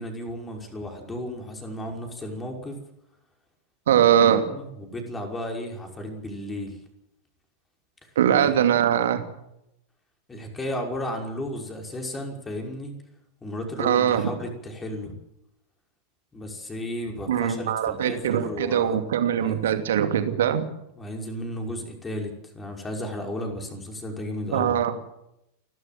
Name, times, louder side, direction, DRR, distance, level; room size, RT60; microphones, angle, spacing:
voice 1, 0.0-2.8 4.2-6.8 8.4-8.5 10.3-12.9 13.4-15.1 16.3-19.0 19.4-19.7 21.0-24.8, left 1 dB, 15° left, 2 dB, 5.7 m, -34 dB
voice 2, 3.9-4.4 8.2-9.2 13.8-14.3 17.3-20.6 24.5-24.9, right 9 dB, 60° right, 7 dB, 2.6 m, -21 dB
29.0 x 13.0 x 7.7 m, 0.83 s
figure-of-eight pair, 90°, 0 cm